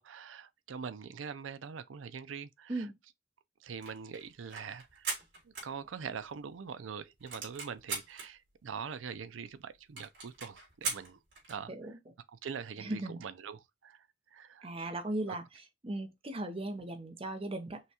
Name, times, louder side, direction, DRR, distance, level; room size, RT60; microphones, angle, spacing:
voice 1, 0.0-2.9 3.6-5.2 5.4-11.2 11.5-11.7 12.3-14.1 14.3-14.7 15.3-15.4, right 6 dB, 85° right, 0.5 m, -43 dB
sound 1, 3.6-6.3 6.7-6.8 7.0-8.3 8.9-9.0 9.2-9.3 9.5-9.6 10.0-11.6, right 4 dB, 65° right, 2.8 m, -40 dB
voice 2, 11.7-12.0 12.8-13.2 14.6-15.4 15.8-17.8, right 2 dB, 30° right, 0.7 m, -37 dB
5.7 x 2.3 x 2.9 m
head